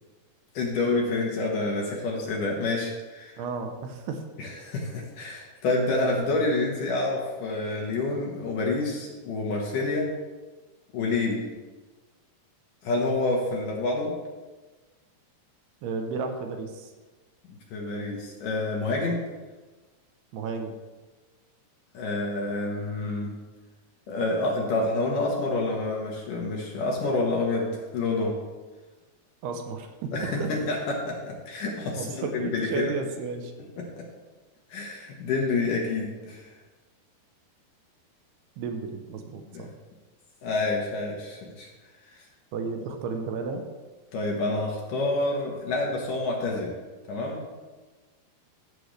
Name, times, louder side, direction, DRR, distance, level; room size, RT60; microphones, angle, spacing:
voice 1, 0.5-3.4 4.4-10.1 10.9-11.5 12.8-14.1 17.7-19.2 21.9-23.3 24.1-28.3 30.1-32.9 34.0-34.1 34.7-36.5 39.5-39.6 40.4-41.7 44.1-46.7 47.1-47.4, left 2 dB, 65° left, -1 dB, 2.4 m, -28 dB
voice 2, 3.4-4.2 15.8-16.9 20.3-20.7 29.4-30.7 32.0-33.5 38.6-39.7 42.5-43.7, right 4 dB, 80° right, 5 dB, 2.8 m, -33 dB
15.5 x 6.8 x 3.3 m, 1.3 s
omnidirectional pair, 4.8 m